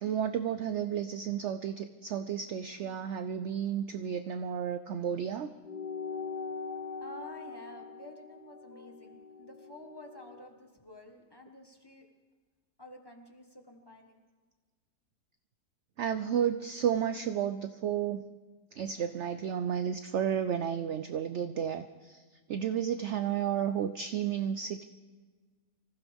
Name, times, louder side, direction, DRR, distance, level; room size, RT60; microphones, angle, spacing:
voice 1, 0.0-5.5 16.0-18.2 18.7-22.2 22.5-24.8, right 8 dB, 70° right, 10 dB, 0.6 m, -32 dB
sound 1, 5.6-10.5, left 5 dB, 70° left, 0.4 m, -42 dB
voice 2, 7.0-12.0 12.8-14.2, left 1 dB, 15° left, 2 dB, 1.2 m, -51 dB
25.0 x 15.0 x 3.5 m, 1.4 s
omnidirectional pair, 1.8 m